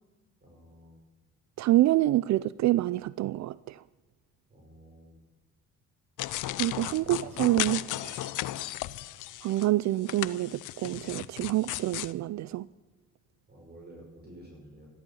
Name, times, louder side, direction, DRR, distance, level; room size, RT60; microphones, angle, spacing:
voice 1, 0.4-1.0 4.5-5.2 7.0-7.2 13.5-14.9, right 1 dB, 35° right, -1 dB, 5.8 m, -51 dB
voice 2, 1.6-3.8 6.6-8.3 9.4-12.7, right 15 dB, 65° right, 19 dB, 0.5 m, -27 dB
sound 1, 6.2-9.7 10.0-12.1, left 15 dB, 85° left, 0.7 m, -35 dB
14.0 x 12.5 x 7.1 m, 1.2 s
cardioid pair, 90°, 30 cm